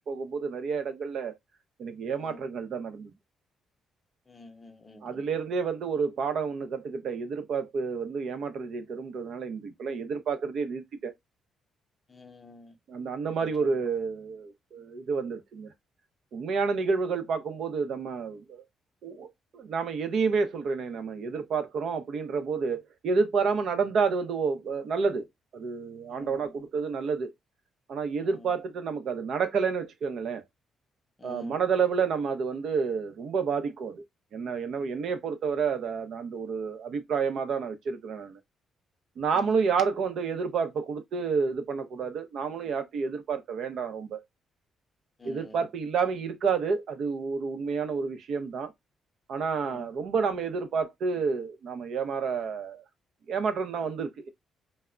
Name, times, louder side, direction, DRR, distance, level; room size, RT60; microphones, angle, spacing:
voice 1, 0.1-1.3 1.8-3.1 5.0-11.1 12.9-15.7 16.3-18.6 19.0-25.3 25.5-27.3 27.9-30.4 31.2-34.0 34.3-38.4 39.2-44.2 45.2-48.7 49.3-52.8 53.3-54.3, right 5 dB, 65° right, 0.6 m, -30 dB
voice 2, 4.3-5.2 12.1-12.8 13.6-13.7 26.1-26.5 28.2-28.5 31.2-31.6 39.3-39.7 45.2-45.6 49.6-49.9, left 2 dB, 25° left, 0.7 m, -48 dB
2.2 x 2.0 x 3.6 m
cardioid pair, 90°, 0 cm